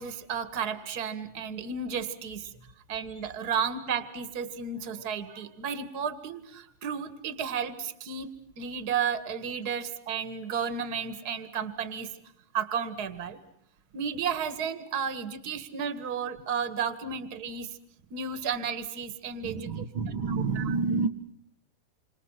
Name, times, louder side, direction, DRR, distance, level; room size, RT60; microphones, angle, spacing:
voice 1, 0.0-2.5 2.9-8.3 8.6-12.1 12.5-13.4 13.9-17.7 18.1-19.8 20.3-20.8, right 6 dB, 35° right, 11 dB, 1.8 m, -33 dB
voice 2, 19.4-21.1, right 4 dB, 60° right, 7 dB, 1.4 m, -29 dB
28.5 x 26.0 x 5.8 m, 0.72 s
omnidirectional pair, 3.8 m